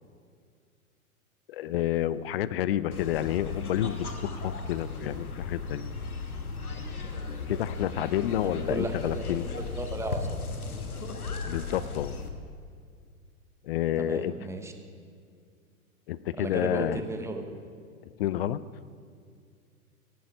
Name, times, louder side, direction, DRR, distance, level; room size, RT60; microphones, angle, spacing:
voice 1, 1.5-6.1 7.5-9.5 11.4-12.1 13.6-14.3 16.1-17.0 18.2-18.6, left 12 dB, 45° left, 17 dB, 0.5 m, -29 dB
sound 1, 2.9-12.3, left 4 dB, 80° left, 1.4 m, -36 dB
voice 2, 8.4-10.4 14.0-14.7 16.4-17.6, right 2 dB, 5° right, 5 dB, 0.9 m, -35 dB
16.5 x 9.3 x 5.3 m, 2.2 s
figure-of-eight pair, 105°, 44 cm